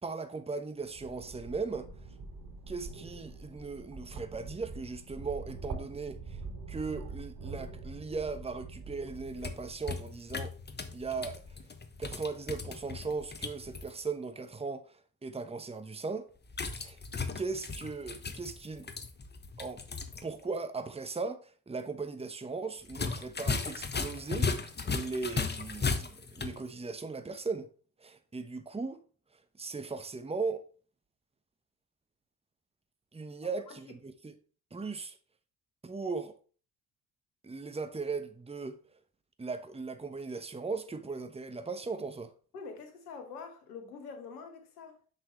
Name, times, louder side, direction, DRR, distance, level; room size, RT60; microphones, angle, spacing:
voice 1, 0.0-1.9 2.7-6.4 6.7-10.5 10.9-11.4 12.0-16.3 16.8-17.0 17.3-18.9 19.6-19.8 20.2-27.7 28.0-29.0 29.6-30.6 33.1-34.3 34.7-35.2 35.8-36.3 37.4-38.8 39.4-42.3, right 4 dB, 15° right, 1.1 m, -38 dB
sound 1, 0.8-10.0, right 3 dB, 50° right, 4.5 m, -44 dB
sound 2, 9.2-13.9 16.5-20.2 20.5-20.6 22.9-26.6, left 4 dB, 20° left, 1.2 m, -36 dB
voice 2, 42.5-45.1, left 5 dB, 90° left, 1.4 m, -45 dB
8.0 x 6.0 x 3.2 m
hypercardioid pair, 55°, 45 cm